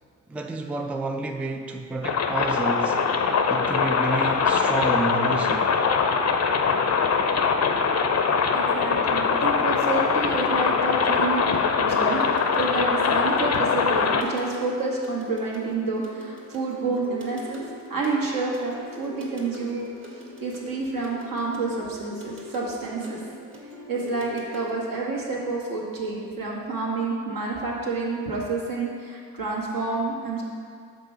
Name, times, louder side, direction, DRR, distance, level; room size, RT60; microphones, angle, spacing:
voice 1, 0.3-3.1 3.4-5.8 8.8-8.9, right 2 dB, 5° right, 5 dB, 0.3 m, -30 dB
sound 1, 2.0-14.2, left 5 dB, 40° left, 0.6 m, -22 dB
voice 2, 8.5-17.6 17.9-19.8 20.4-23.2 23.9-30.4, right 3 dB, 55° right, -3 dB, 1.5 m, -29 dB
sound 2, 11.5-25.0, equal, 30° right, 1.6 m, -43 dB
5.5 x 3.9 x 5.0 m, 2.1 s
hypercardioid pair, 40°, 40 cm